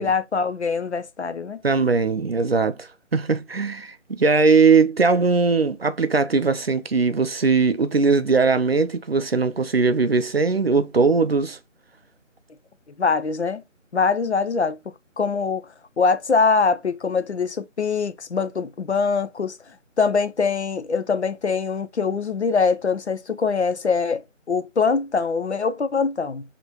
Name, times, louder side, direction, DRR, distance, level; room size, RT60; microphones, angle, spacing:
voice 1, 0.0-1.6 13.0-13.6 13.9-14.8 15.2-15.7 16.0-19.6 20.0-26.4, left 5 dB, 60° left, 0.6 m, -23 dB
voice 2, 1.6-11.6, right 4 dB, 50° right, 0.4 m, -20 dB
4.2 x 2.9 x 2.8 m
figure-of-eight pair, 165°, 38 cm